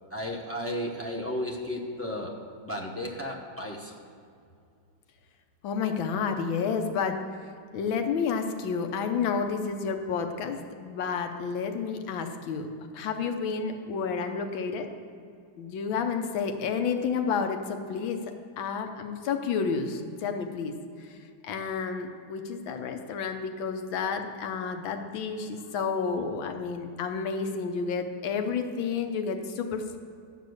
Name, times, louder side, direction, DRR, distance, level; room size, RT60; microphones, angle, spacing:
voice 1, 0.1-4.0, equal, 15° left, -2 dB, 0.4 m, -34 dB
voice 2, 5.6-7.2 7.7-12.7 12.9-14.9 15.6-18.2 18.6-20.7 21.0-21.2 21.4-30.0, left 5 dB, 90° left, 6 dB, 1.6 m, -30 dB
11.5 x 5.3 x 7.9 m, 2.4 s
omnidirectional pair, 2.1 m